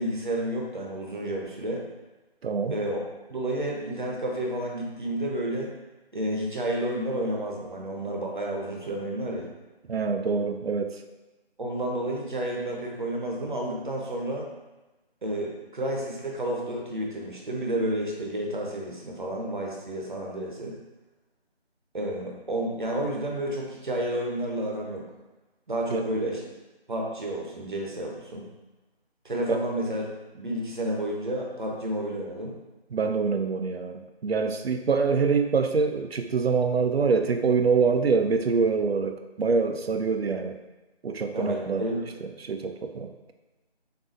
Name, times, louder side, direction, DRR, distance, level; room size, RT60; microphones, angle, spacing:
voice 1, 0.0-1.8 2.7-3.0 3.3-5.7 6.1-9.5 11.6-14.5 15.2-20.8 21.9-25.0 25.7-26.4 26.9-28.5 29.2-30.1 30.3-32.6 41.3-42.1, right 1 dB, 50° right, -1 dB, 0.9 m, -30 dB
voice 2, 2.4-2.8 9.9-11.0 25.9-26.1 29.5-29.6 32.9-40.6 41.0-41.8 42.2-43.1, right 5 dB, 70° right, 7 dB, 0.6 m, -25 dB
6.4 x 2.7 x 2.6 m, 1.1 s
figure-of-eight pair, 170°, 31 cm